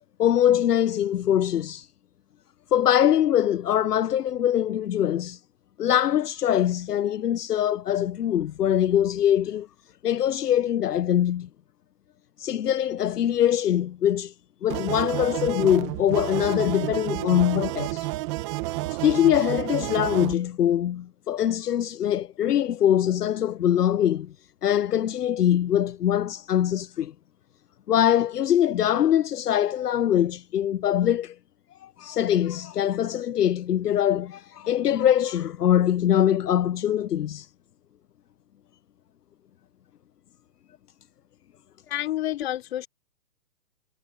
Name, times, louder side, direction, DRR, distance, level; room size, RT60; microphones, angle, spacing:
voice 1, 0.2-1.9 2.7-5.4 5.8-9.7 10.0-11.5 12.4-14.3 14.6-18.1 18.9-24.3 24.6-27.1 27.9-31.3 31.8-37.5, left 10 dB, 75° left, 0.8 m, -23 dB
sound 1, 14.7-20.3, right 19 dB, 20° right, 1.2 m, -30 dB
voice 2, 41.9-42.9, left 13 dB, 40° left, 3.1 m, -29 dB
hypercardioid pair, 160°, 47 cm